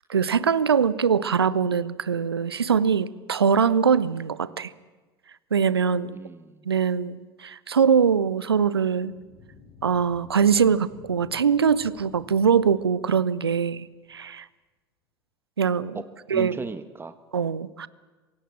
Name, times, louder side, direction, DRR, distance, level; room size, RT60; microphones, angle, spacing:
voice 1, 0.1-4.7 5.5-6.1 6.7-9.1 9.8-14.5 15.6-16.0 16.3-16.6 17.3-17.9, right 6 dB, 80° right, 19 dB, 0.6 m, -22 dB
voice 2, 6.1-6.6 15.9-16.0 16.3-17.2, right 4 dB, 15° right, 11 dB, 1.5 m, -36 dB
sound 1, 8.8-13.8, left 5 dB, 50° left, 4.6 m, -51 dB
26.5 x 16.5 x 7.6 m, 1.3 s
figure-of-eight pair, 65°, 13 cm